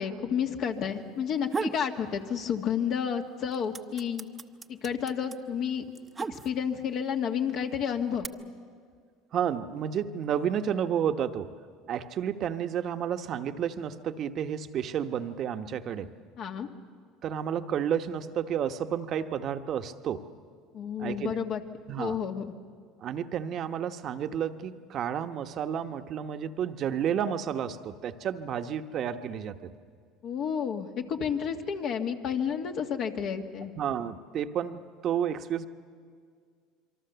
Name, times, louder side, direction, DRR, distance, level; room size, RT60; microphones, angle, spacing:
voice 1, 0.0-4.3 4.7-5.9 6.3-8.3 16.4-16.7 20.7-21.6 22.0-22.4 30.2-33.7, left 7 dB, 55° left, 4 dB, 1.8 m, -31 dB
sound 1, 1.2-1.9 2.3-3.0 3.3-6.9 7.6-8.3, right 4 dB, 25° right, 0.9 m, -36 dB
voice 2, 9.3-11.5 11.9-16.1 17.2-20.3 21.0-21.4 21.9-22.2 23.0-29.7 33.8-35.7, right 9 dB, 50° right, 8 dB, 1.1 m, -31 dB
26.5 x 23.5 x 6.9 m, 2.1 s
supercardioid pair, 90°, 0 cm